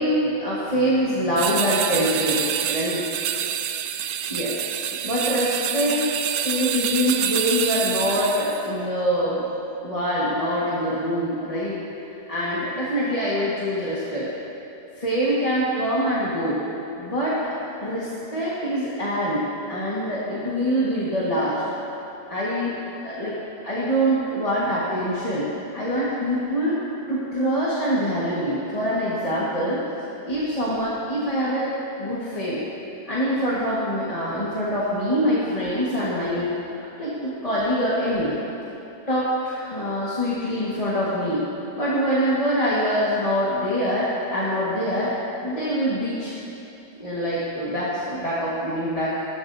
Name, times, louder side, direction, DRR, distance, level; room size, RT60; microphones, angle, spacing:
voice 1, 0.0-3.0 4.3-9.4 9.8-11.8 12.3-14.3 15.0-16.6 17.0-17.5 17.8-21.6 22.3-22.7 23.0-23.4 23.6-26.8 27.1-29.8 30.3-31.7 32.0-32.6 33.1-36.5 37.0-38.4 39.1-41.4 41.8-45.1 45.4-46.3 47.0-49.1, equal, 25° left, -9 dB, 1.6 m, -24 dB
sound 1, 1.4-8.7, right 9 dB, 70° right, 0.8 m, -27 dB
17.0 x 13.0 x 2.7 m, 2.9 s
omnidirectional pair, 1.7 m